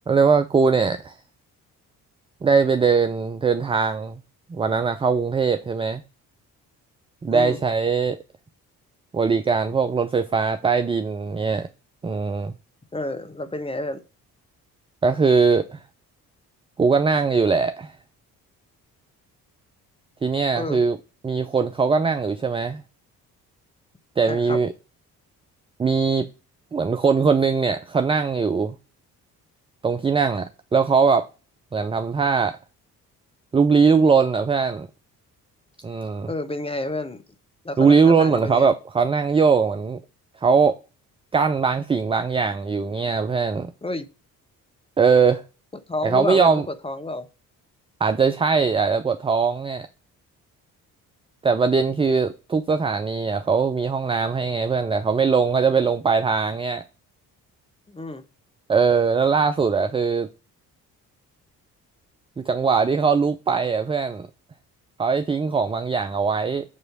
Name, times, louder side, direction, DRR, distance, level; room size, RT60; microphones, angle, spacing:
voice 1, 0.1-1.1 2.4-4.2 4.5-6.0 7.2-8.2 9.1-11.7 12.0-12.5 15.0-15.8 16.8-17.9 20.2-21.0 21.2-22.8 24.2-24.7 25.8-26.3 26.7-28.7 29.8-31.3 31.7-32.6 33.5-34.9 35.8-36.3 37.8-40.0 40.4-40.8 41.3-43.7 45.0-45.4 46.0-46.6 48.0-49.9 51.4-56.8 58.7-60.3 62.4-64.3 65.0-66.6, right 5 dB, 10° right, 0.4 m, -21 dB
voice 2, 7.3-7.6 12.9-14.0 20.5-20.8 24.2-24.6 36.3-37.2 37.6-38.7 43.8-44.1 45.9-47.3 57.9-58.2, left 2 dB, 10° left, 1.1 m, -30 dB
7.4 x 3.1 x 6.0 m
figure-of-eight pair, 45°, 47 cm